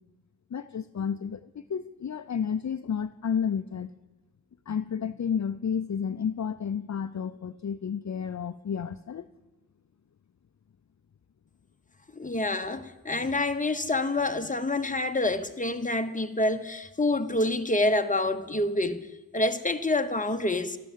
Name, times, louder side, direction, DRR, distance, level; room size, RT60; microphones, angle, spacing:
voice 1, 0.5-3.9 4.7-9.3, left 7 dB, 50° left, 0.5 m, -31 dB
voice 2, 12.2-19.1 19.3-20.8, left 2 dB, 20° left, 1.0 m, -27 dB
13.0 x 12.0 x 7.5 m
wide cardioid pair, 65°, 37 cm